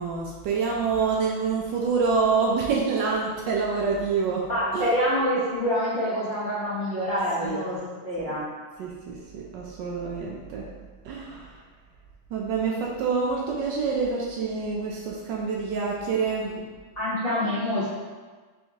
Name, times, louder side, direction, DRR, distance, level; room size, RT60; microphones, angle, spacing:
voice 1, 0.0-4.9 7.4-7.6 8.2-8.4 8.8-10.7 11.0-11.6 12.3-16.6, right 5 dB, 75° right, -2 dB, 1.1 m, -27 dB
voice 2, 4.5-7.8 8.0-8.4 17.0-18.0, equal, 40° left, -11 dB, 0.9 m, -26 dB
4.4 x 3.2 x 2.8 m, 1.4 s
omnidirectional pair, 2.2 m